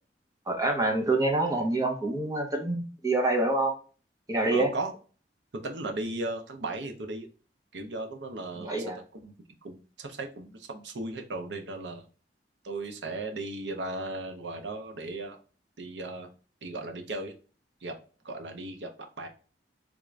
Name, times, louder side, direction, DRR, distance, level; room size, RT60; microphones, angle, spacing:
voice 1, 0.5-3.7 4.3-4.7 8.7-9.0, right 2 dB, 20° right, 2 dB, 0.7 m, -26 dB
voice 2, 4.5-4.9 5.6-7.3 7.7-8.8 9.2-9.3 9.6-12.1 12.6-15.4 15.8-16.3 16.6-17.3 17.8-18.0 18.2-19.3, right 2 dB, 75° right, 4 dB, 0.6 m, -36 dB
3.5 x 2.5 x 3.1 m, 0.38 s
head